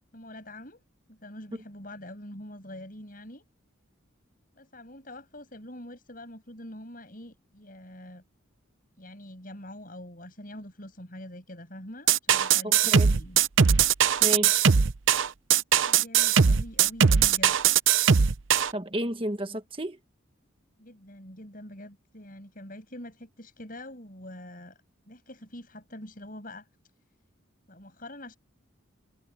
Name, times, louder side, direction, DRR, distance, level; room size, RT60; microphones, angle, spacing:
voice 1, 0.1-0.8 1.1-3.4 4.6-8.2 9.0-13.4 15.5-17.6 20.8-24.8 25.1-26.7 27.7-28.4, left 1 dB, 40° left, 7.3 m, -44 dB
sound 1, 12.1-18.7, right 7 dB, 70° right, 0.7 m, -20 dB
voice 2, 12.6-13.1 14.2-14.7 18.7-20.0, right 1 dB, 25° right, 1.4 m, -32 dB
head